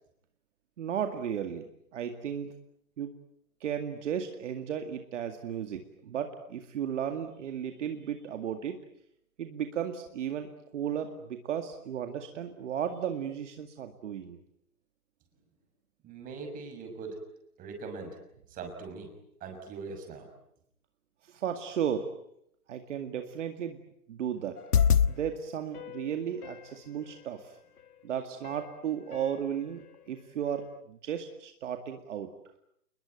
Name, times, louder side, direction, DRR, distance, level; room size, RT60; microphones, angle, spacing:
voice 1, 0.8-1.6 1.9-2.5 3.0-3.1 3.6-8.8 9.4-14.4 21.2-22.1 22.7-23.8 24.1-24.6 25.1-27.6 28.0-29.8 30.1-32.3, right 8 dB, 50° right, 6 dB, 2.2 m, -34 dB
voice 2, 16.0-17.2 17.6-18.2 18.5-19.1 19.4-20.3, right 4 dB, 20° right, 4 dB, 6.2 m, -41 dB
sound 1, 24.6-25.1 25.7-26.7 27.8-27.9 28.4-28.7 29.1-29.4 29.8-29.9, left 7 dB, 75° left, 1.5 m, -27 dB
29.0 x 21.5 x 9.2 m, 0.74 s
hypercardioid pair, 150°, 45 cm